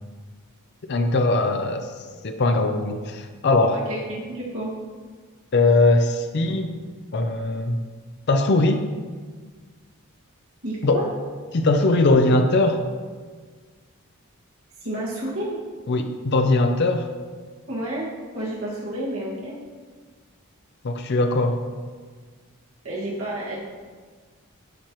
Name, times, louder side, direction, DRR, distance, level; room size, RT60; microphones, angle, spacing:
voice 1, 0.9-1.9 2.2-3.8 5.5-6.7 7.1-7.8 8.3-8.8 10.8-11.1 11.5-12.8 15.9-17.1 20.8-21.6, left 2 dB, 50° left, 6 dB, 0.5 m, -20 dB
voice 2, 3.7-4.7 10.6-11.0 14.8-15.6 17.7-18.1 18.3-19.6 22.8-23.6, right 1 dB, 70° right, -6 dB, 1.9 m, -30 dB
11.5 x 4.5 x 3.0 m, 1.5 s
head